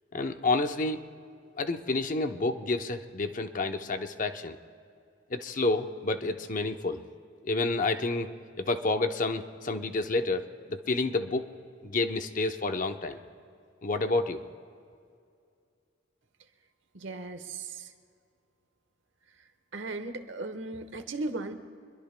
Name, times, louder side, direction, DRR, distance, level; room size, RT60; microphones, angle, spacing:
voice 1, 0.1-1.1 1.6-4.6 5.3-7.0 7.4-8.3 8.6-10.4 10.7-11.5 11.8-13.2 13.8-14.4, left 3 dB, 45° left, 7 dB, 0.7 m, -29 dB
voice 2, 16.9-17.9 19.7-21.5, right 2 dB, 80° right, 9 dB, 1.1 m, -36 dB
25.0 x 22.0 x 2.2 m, 2.4 s
head